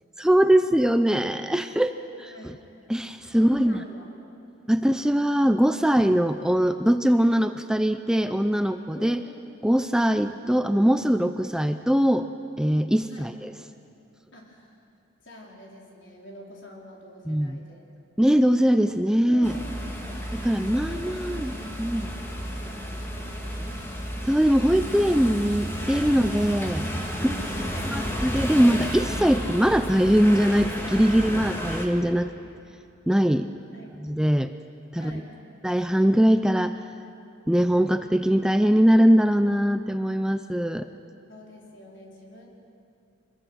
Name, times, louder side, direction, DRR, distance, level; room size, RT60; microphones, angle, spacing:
voice 1, 0.2-1.9 2.2-2.5 2.9-3.8 4.7-9.2 9.6-12.3 12.6-13.5 17.3-17.6 18.2-19.6 20.3-21.5 21.8-22.1 24.3-26.9 27.2-27.3 27.9-32.3 33.1-33.5 34.0-34.5 34.9-35.1 35.6-36.8 37.5-40.9, equal, 5° right, 9 dB, 0.4 m, -21 dB
voice 2, 1.3-1.8 2.1-2.9 3.3-4.2 4.8-5.0 5.8-5.9 8.3-8.6 8.9-9.3 13.1-13.3 14.3-14.8 15.2-17.9 19.2-20.4 20.7-23.7 26.1-26.3 27.2-28.2 33.7-33.9 35.0-35.3 40.6-40.8 41.3-42.5, equal, 70° left, -2 dB, 4.3 m, -46 dB
sound 1, 19.4-31.9, equal, 10° left, 2.1 m, -32 dB
25.0 x 21.5 x 6.4 m, 2.6 s
head